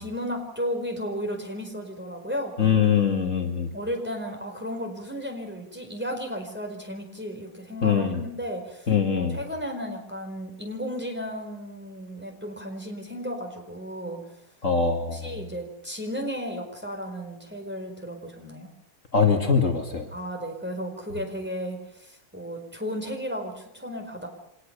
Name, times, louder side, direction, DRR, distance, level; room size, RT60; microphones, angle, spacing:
voice 1, 0.0-2.8 3.7-14.2 15.1-18.7 20.1-24.3, equal, 5° right, 3 dB, 4.6 m, -34 dB
voice 2, 2.6-3.7 7.8-8.2 8.9-9.4 14.6-15.3 19.1-20.1, left 6 dB, 60° left, 4 dB, 2.6 m, -22 dB
25.5 x 19.5 x 6.8 m, 0.80 s
omnidirectional pair, 1.5 m